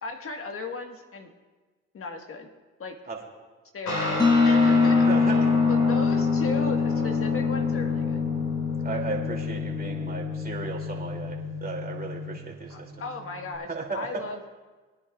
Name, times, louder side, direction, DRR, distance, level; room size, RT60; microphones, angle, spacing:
voice 1, 0.0-1.3 1.9-2.5 2.8-3.0 3.7-8.2 12.7-14.4, left 3 dB, 50° left, 5 dB, 1.6 m, -36 dB
Guitar, 3.9-13.5, left 3 dB, 75° left, 4.4 m, -30 dB
sound 1, 4.2-9.8, left 4 dB, 15° left, 1.4 m, -24 dB
voice 2, 5.1-5.4 8.8-12.9 13.7-14.0, right 4 dB, 30° right, 0 dB, 2.7 m, -35 dB
23.0 x 9.8 x 2.4 m, 1.3 s
supercardioid pair, 70°, 29 cm